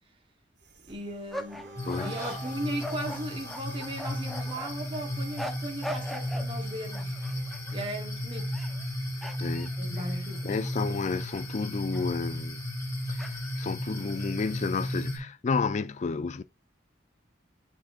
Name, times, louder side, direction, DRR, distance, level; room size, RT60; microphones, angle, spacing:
sound 1, 0.6-9.8 10.0-10.5 10.8-12.4, right 3 dB, 65° right, 1.6 m, -50 dB
voice 1, 0.9-1.7 2.0-7.2 7.7-8.5 9.8-10.4, right 1 dB, 30° right, 1.1 m, -37 dB
sound 2, 1.3-4.7 5.4-6.5 6.9-7.7 8.4-8.9 9.2-10.8 11.3-11.4 11.9-12.1 13.2-13.7, equal, ahead, 0.7 m, -40 dB
sound 3, 1.8-15.2, equal, 20° left, 2.0 m, -34 dB
voice 2, 1.9-2.3 9.4-9.7 10.4-12.6 13.1-16.4, left 4 dB, 40° left, 0.4 m, -31 dB
10.0 x 4.7 x 2.4 m
head